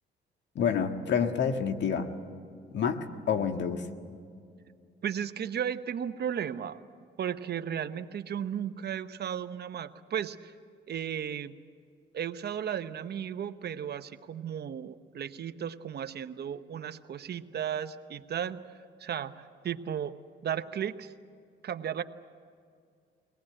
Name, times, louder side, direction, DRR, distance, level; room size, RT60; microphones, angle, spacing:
voice 1, 0.5-2.1 2.7-3.9, left 7 dB, 65° left, 6 dB, 1.7 m, -28 dB
voice 2, 5.0-6.8 7.2-10.5 10.9-11.5 12.1-18.7 19.0-20.1 20.4-21.1 21.6-22.0, right 9 dB, 55° right, 11 dB, 0.9 m, -35 dB
23.5 x 18.5 x 8.8 m, 2.2 s
cardioid pair, 90°, 20 cm